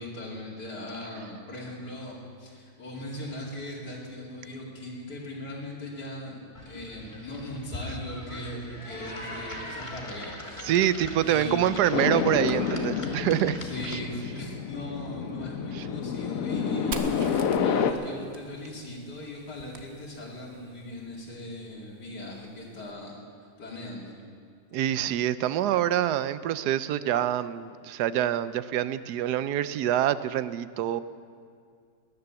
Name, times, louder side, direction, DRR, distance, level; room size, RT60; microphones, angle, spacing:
voice 1, 0.0-6.4 6.6-10.8 11.2-12.0 13.6-23.2 23.6-24.1, left 1 dB, 75° left, -4 dB, 3.2 m, -39 dB
sound 1, 6.5-14.3, left 1 dB, 20° left, 1.5 m, -41 dB
voice 2, 10.6-13.6 13.8-14.0 15.7-15.9 24.7-31.0, right 11 dB, 80° right, 15 dB, 1.1 m, -26 dB
sound 2, 11.9-17.9, left 7 dB, 60° left, 1.2 m, -29 dB
Fire, 16.9-20.6, right 4 dB, 45° right, 1.1 m, -42 dB
20.0 x 10.5 x 7.1 m, 2.2 s
omnidirectional pair, 1.8 m